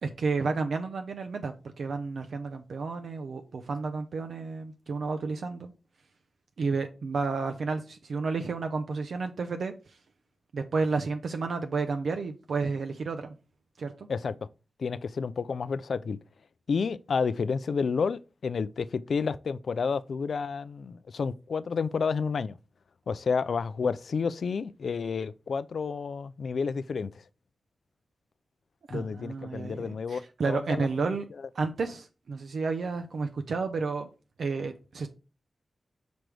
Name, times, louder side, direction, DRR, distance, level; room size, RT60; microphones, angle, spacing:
voice 1, 0.0-5.7 6.6-9.7 10.5-13.3 13.8-14.1 28.9-31.2 31.5-34.1 34.4-35.1, right 4 dB, 75° right, 0.5 m, -31 dB
voice 2, 14.8-16.2 16.7-22.6 23.1-27.1 28.9-31.2, left 5 dB, 70° left, 0.4 m, -30 dB
6.1 x 5.1 x 3.2 m
wide cardioid pair, 145°, 0 cm